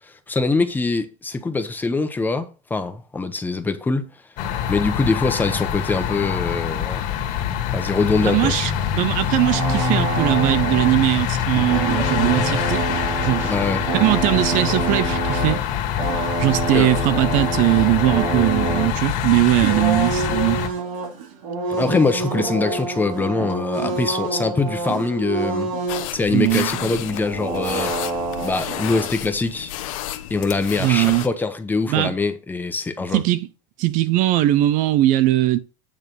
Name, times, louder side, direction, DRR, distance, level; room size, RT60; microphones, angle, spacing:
voice 1, 0.3-4.1 4.7-7.0 7.7-8.7 13.4-13.9 16.7-16.9 21.7-25.7 26.1-27.9 28.4-29.7 30.3-33.2, left 3 dB, 10° left, 0.9 m, -23 dB
sound 1, 4.4-20.7, left 9 dB, 55° left, 1.8 m, -25 dB
voice 2, 8.2-12.9 13.2-13.5 13.9-15.6 16.4-20.6 26.3-27.0 30.8-31.3 31.9-32.1 33.1-33.5 33.8-35.6, right 15 dB, 50° right, 0.7 m, -20 dB
sound 2, 9.2-11.3 11.5-15.6 16.0-18.9 19.5-26.1 26.5-26.6 26.8-29.1, right 4 dB, 90° right, 3.1 m, -27 dB
Scratchin like A Wnnabe DJ, 25.9-31.3, left 13 dB, 80° left, 1.0 m, -32 dB
9.0 x 3.5 x 6.1 m
supercardioid pair, 135°, 17 cm